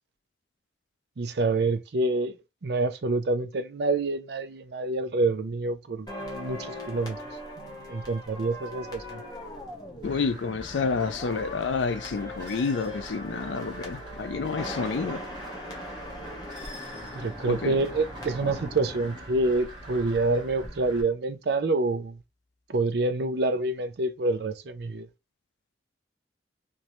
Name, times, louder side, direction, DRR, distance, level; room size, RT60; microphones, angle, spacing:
voice 1, 1.2-2.4 2.6-7.2 7.6-9.2 17.1-22.2 22.7-25.1, right 2 dB, 65° right, 0.5 m, -27 dB
sound 1, 6.1-20.2 20.5-20.7, left 1 dB, 20° left, 0.9 m, -40 dB
voice 2, 10.0-15.2 17.5-17.8, left 4 dB, 80° left, 0.5 m, -29 dB
sound 2, 10.0-21.0, right 1 dB, 25° right, 1.5 m, -44 dB
3.1 x 2.6 x 2.9 m
head